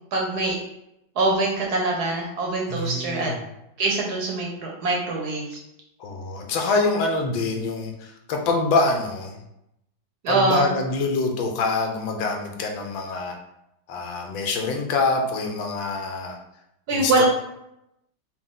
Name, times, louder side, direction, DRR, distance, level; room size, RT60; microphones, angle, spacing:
voice 1, 0.1-0.6 1.2-3.3 3.8-5.6 10.2-10.7 16.9-17.3, right 2 dB, 70° right, -1 dB, 1.0 m, -23 dB
voice 2, 2.7-3.4 6.0-9.4 10.3-13.3 13.9-16.4 16.9-17.3, left 3 dB, 85° left, 2 dB, 1.4 m, -25 dB
4.4 x 2.3 x 3.6 m, 0.84 s
omnidirectional pair, 2.1 m